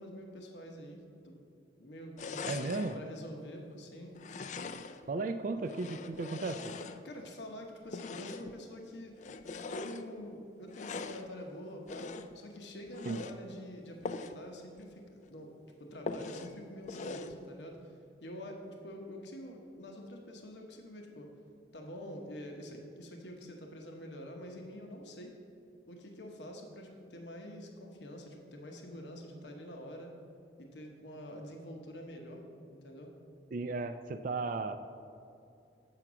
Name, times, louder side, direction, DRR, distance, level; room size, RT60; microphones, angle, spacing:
voice 1, 0.0-1.3 1.8-4.2 7.0-9.1 9.7-12.1 12.3-17.9 18.2-21.3 21.7-25.3 25.9-30.1 30.6-32.4 32.7-33.1, equal, 80° left, 2 dB, 0.9 m, -46 dB
sound 1, 2.2-3.0 4.1-5.1 5.6-7.3 7.9-8.6 9.2-10.0 10.7-11.3 11.9-12.4 12.9-13.4 14.0-14.4 14.8-14.9 15.2-15.3 16.1-16.5 16.9-17.4, left 4 dB, 40° left, 0.3 m, -42 dB
voice 2, 2.4-3.0 5.1-6.7 13.1-13.2 33.5-34.8, right 3 dB, 50° right, 8 dB, 0.3 m, -35 dB
7.8 x 5.8 x 6.0 m, 2.5 s
head